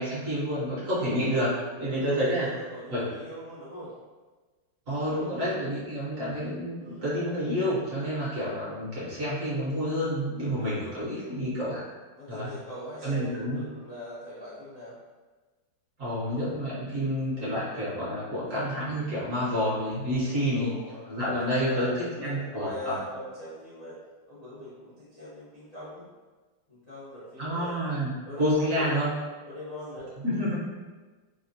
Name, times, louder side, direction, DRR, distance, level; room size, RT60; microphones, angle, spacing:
voice 1, 0.0-1.5 1.8-2.5 2.9-3.0 4.9-11.8 12.3-12.5 13.0-13.6 16.0-20.7 21.1-21.9 22.2-23.0 27.4-29.1 30.2-30.6, equal, 50° right, -9 dB, 1.2 m, -29 dB
voice 2, 1.8-3.9 5.0-5.6 6.8-7.1 9.1-9.3 10.3-11.3 12.1-15.0 16.2-16.5 20.1-24.0 24.3-26.0 26.7-27.8 28.2-29.0 29.4-30.1, equal, 70° left, -12 dB, 0.3 m, -41 dB
3.4 x 2.2 x 2.6 m, 1.3 s
omnidirectional pair, 2.0 m